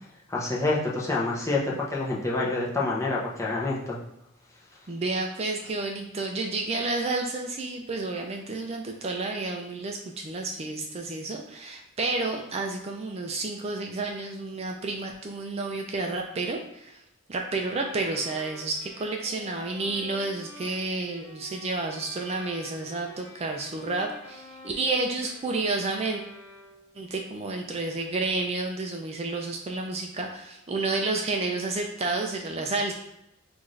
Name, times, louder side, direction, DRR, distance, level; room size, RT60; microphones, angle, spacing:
voice 1, 0.3-4.0, left 2 dB, 15° left, -5 dB, 0.8 m, -27 dB
voice 2, 4.9-17.0 17.3-26.2 27.0-32.9, right 3 dB, 30° right, 2 dB, 0.4 m, -30 dB
sound 1, 17.6-27.0, left 2 dB, 90° left, 1.0 m, -47 dB
5.7 x 2.6 x 3.2 m, 0.85 s
head